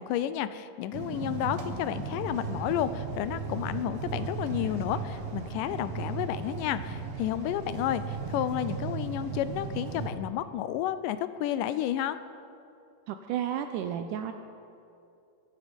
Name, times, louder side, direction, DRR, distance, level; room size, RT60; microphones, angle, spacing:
voice 1, 0.0-12.2, left 11 dB, 80° left, 13 dB, 2.1 m, -31 dB
sound 1, 0.9-10.1, right 5 dB, 55° right, 1.6 m, -36 dB
voice 2, 13.1-14.3, right 10 dB, 80° right, 7 dB, 2.0 m, -32 dB
22.5 x 11.0 x 5.3 m, 2.6 s
omnidirectional pair, 4.0 m